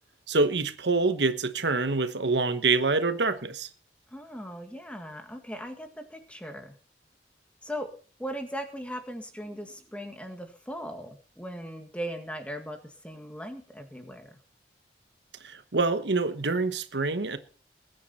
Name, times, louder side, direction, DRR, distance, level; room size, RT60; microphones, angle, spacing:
voice 1, 0.3-3.7 15.4-17.4, right 3 dB, 85° right, 1.2 m, -26 dB
voice 2, 4.1-6.8 7.6-7.9 8.2-14.4, equal, 5° left, 1.8 m, -38 dB
21.0 x 9.4 x 4.2 m
head